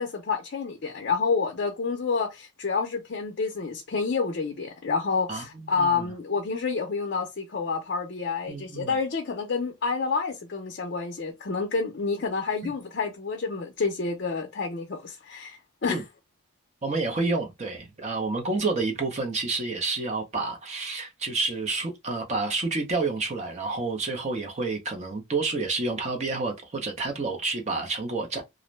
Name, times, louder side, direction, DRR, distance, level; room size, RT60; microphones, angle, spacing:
voice 1, 0.0-16.0, left 4 dB, 50° left, 0.4 m, -29 dB
voice 2, 5.3-6.1 8.5-8.9 12.6-12.7 15.9-16.0 16.8-28.4, right 3 dB, 30° right, 0.6 m, -29 dB
2.5 x 2.0 x 3.0 m
head